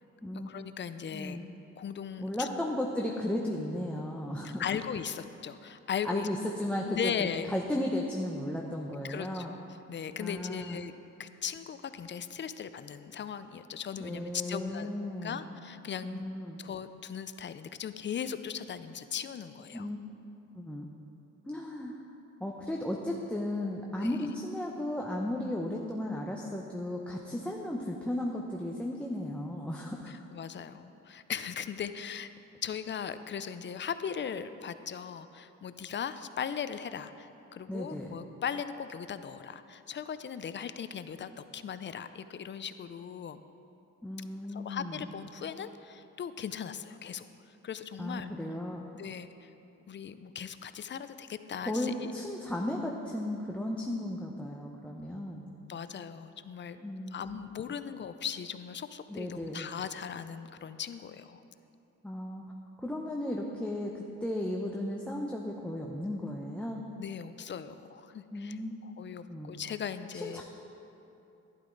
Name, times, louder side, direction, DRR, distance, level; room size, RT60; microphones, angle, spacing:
voice 1, 0.3-1.4 1.8-2.5 4.4-6.3 6.9-7.5 9.0-9.6 9.9-10.9 11.2-14.9 15.2-16.3 16.6-19.9 24.0-24.2 30.3-32.3 32.6-43.4 44.5-47.3 47.6-48.3 49.0-49.5 49.9-52.1 55.7-61.4 67.0-70.4, left 7 dB, 40° left, 12 dB, 0.5 m, -38 dB
voice 2, 1.1-1.4 2.2-4.7 6.0-9.5 10.2-10.8 14.0-15.4 16.0-16.6 19.7-20.0 20.5-20.9 21.4-22.0 22.4-30.1 37.7-38.2 44.0-45.1 48.0-48.9 51.6-55.5 56.8-57.2 59.1-59.7 62.0-62.4 62.8-66.8 68.3-68.8 69.2-69.5 70.1-70.4, left 1 dB, 5° left, -1 dB, 0.8 m, -35 dB
11.5 x 11.0 x 3.9 m, 2.9 s
cardioid pair, 90°, 30 cm